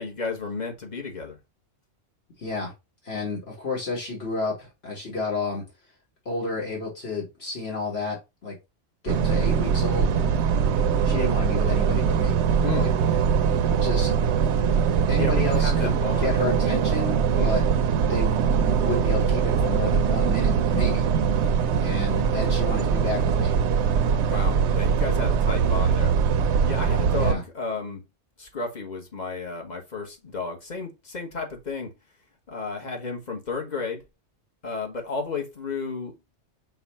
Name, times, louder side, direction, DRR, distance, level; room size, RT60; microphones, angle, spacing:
voice 1, 0.0-1.4 12.6-12.9 15.1-16.4 17.3-17.6 24.3-26.1 26.6-28.0 28.4-31.9 32.5-34.0 34.6-36.2, left 4 dB, 40° left, 1.2 m, -32 dB
voice 2, 2.4-2.7 3.0-5.6 6.3-8.6 9.0-10.1 11.0-12.4 12.7-12.9 13.8-14.1 15.1-15.9 16.2-17.6 18.1-18.3 18.8-21.1 21.8-23.6 27.1-27.4, left 3 dB, 60° left, 1.8 m, -31 dB
sound 1, 9.1-27.3, right 7 dB, 70° right, 0.8 m, -22 dB
5.5 x 2.3 x 4.1 m
omnidirectional pair, 1.2 m